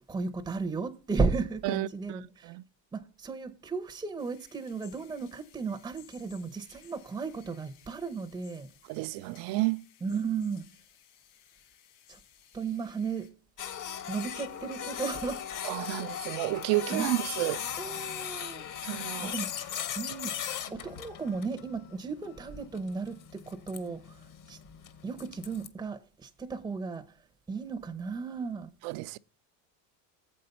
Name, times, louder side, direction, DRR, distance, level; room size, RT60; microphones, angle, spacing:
voice 1, 0.1-2.5 2.9-8.7 10.0-10.6 12.1-12.2 12.5-13.3 14.1-15.4 15.9-16.1 16.9-17.1 17.8-18.7 19.3-19.5 20.0-20.3 20.7-24.6 25.0-27.0 27.5-28.7, right 4 dB, 10° right, 0.6 m, -34 dB
voice 2, 1.6-2.6 8.9-9.8 10.1-10.2 15.6-17.6 18.8-19.3 20.7-20.8 28.8-29.2, right 19 dB, 60° right, 0.5 m, -31 dB
sound 1, 4.2-13.3, left 10 dB, 70° left, 2.8 m, -60 dB
Printer, 13.6-25.7, left 9 dB, 40° left, 1.0 m, -38 dB
7.5 x 5.4 x 5.6 m
supercardioid pair, 120°, 49 cm